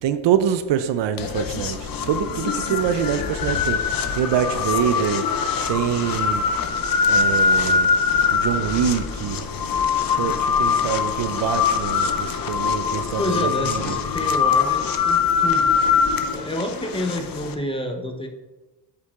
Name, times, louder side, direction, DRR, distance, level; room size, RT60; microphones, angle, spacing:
voice 1, 0.0-3.8 4.1-5.2 5.7-6.4 7.1-7.9 8.3-9.4 10.1-14.0, right 9 dB, 65° right, 0.6 m, -25 dB
sound 1, 1.2-17.5, left 6 dB, 45° left, 0.7 m, -23 dB
voice 2, 13.2-15.8 16.3-18.3, left 1 dB, 10° left, 0.8 m, -29 dB
8.2 x 7.4 x 2.4 m
cardioid pair, 90°, 47 cm